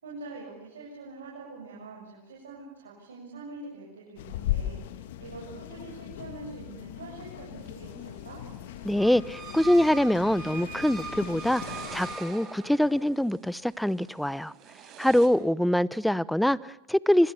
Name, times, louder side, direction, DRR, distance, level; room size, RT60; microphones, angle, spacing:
voice 1, 0.0-8.4, right 3 dB, 90° right, 7.7 m, -44 dB
sound 1, 4.2-12.2, left 13 dB, 70° left, 1.9 m, -38 dB
sound 2, 7.6-15.3, right 8 dB, 45° right, 4.8 m, -51 dB
voice 2, 8.8-14.5 15.0-17.3, equal, ahead, 0.9 m, -24 dB
sound 3, 9.0-13.1, right 4 dB, 30° right, 5.0 m, -41 dB
26.0 x 25.5 x 7.3 m
hypercardioid pair, 95°, 0 cm